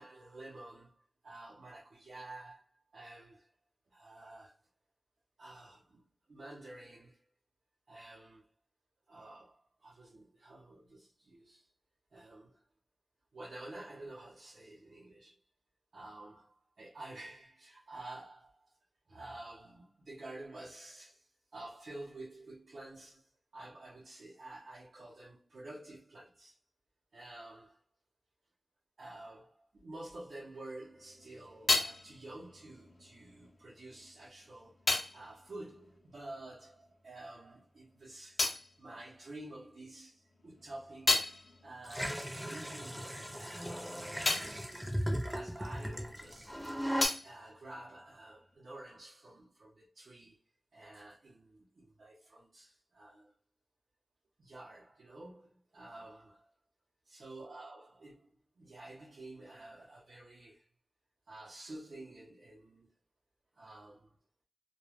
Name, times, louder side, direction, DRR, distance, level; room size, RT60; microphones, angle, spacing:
voice 1, 0.0-3.5 3.9-4.6 5.4-6.0 6.3-7.2 7.9-8.4 9.1-11.7 12.1-12.6 13.3-15.4 15.9-18.7 19.1-26.6 27.1-27.8 29.0-34.8 35.1-38.5 38.8-45.0 45.3-46.9 47.2-50.4 50.7-53.3 54.4-56.5 57.0-58.3 58.6-60.7 61.3-62.9 63.5-64.1, right 2 dB, 80° right, 0.6 m, -50 dB
sound 1, 30.8-36.9 37.1-39.8 40.2-46.3 46.5-48.5, left 2 dB, 70° left, 0.5 m, -37 dB
sound 2, 41.9-47.0, equal, 5° right, 0.5 m, -37 dB
2.2 x 2.2 x 3.2 m
wide cardioid pair, 100°, 0 cm